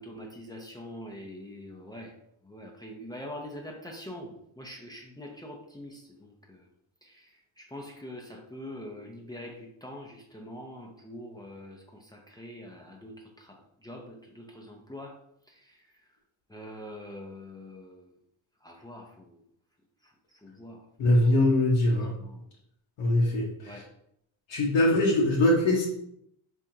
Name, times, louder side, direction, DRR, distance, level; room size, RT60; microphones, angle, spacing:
voice 1, 0.0-2.1 2.4-6.7 7.0-15.2 15.5-15.8 16.5-18.1 18.6-19.4 20.0-20.1 20.4-21.2 22.2-22.5 23.7-23.8, left 1 dB, 10° left, 0 dB, 0.7 m, -44 dB
voice 2, 21.0-22.2 23.0-23.8 24.5-25.9, left 1 dB, 75° left, -4 dB, 1.0 m, -23 dB
4.3 x 3.5 x 2.6 m, 0.74 s
supercardioid pair, 75°, 47 cm